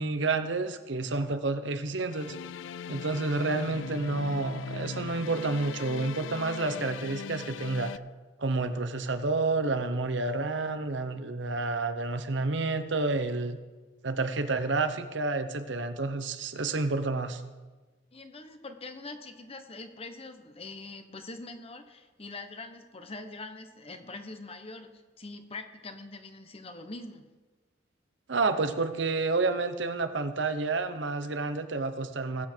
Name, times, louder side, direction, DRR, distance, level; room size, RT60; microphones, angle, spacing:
voice 1, 0.0-2.3 2.9-7.9 8.4-13.6 14.0-17.4 28.3-32.5, right 3 dB, 70° right, 9 dB, 0.9 m, -29 dB
sound 1, 2.1-8.0, left 6 dB, 85° left, 0.4 m, -39 dB
voice 2, 18.1-24.9 25.2-27.2, left 3 dB, 30° left, 7 dB, 1.1 m, -43 dB
20.0 x 8.3 x 4.6 m, 1.3 s
head